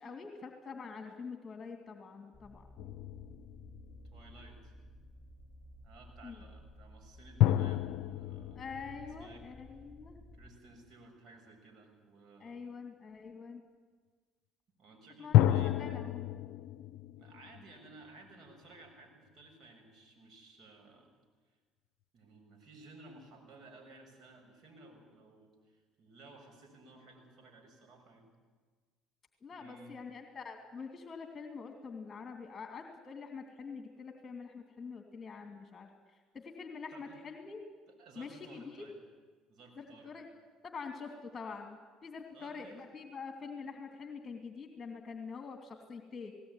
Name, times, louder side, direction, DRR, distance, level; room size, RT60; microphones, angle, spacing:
voice 1, 0.0-2.6 6.2-6.3 8.5-10.2 12.4-13.6 15.2-15.4 15.6-16.3 29.4-35.9 36.3-37.6 38.2-38.8 39.8-40.3 40.6-46.3, left 5 dB, 30° left, 4 dB, 2.9 m, -45 dB
sound 1, 2.3-10.5, equal, 10° left, 7.7 m, -55 dB
sound 2, 2.8-4.4 7.4-10.1 15.3-18.3, left 13 dB, 70° left, 0.6 m, -31 dB
voice 2, 4.1-4.7 5.8-8.6 9.0-9.4 9.8-9.9 10.3-12.6 14.8-15.8 17.1-21.1 22.1-28.3 29.5-30.0 36.9-37.2 37.9-39.0 39.5-40.1 42.3-42.8, right 2 dB, 50° right, 2 dB, 6.7 m, -56 dB
18.5 x 18.5 x 9.9 m, 1.4 s
hypercardioid pair, 75°, 0 cm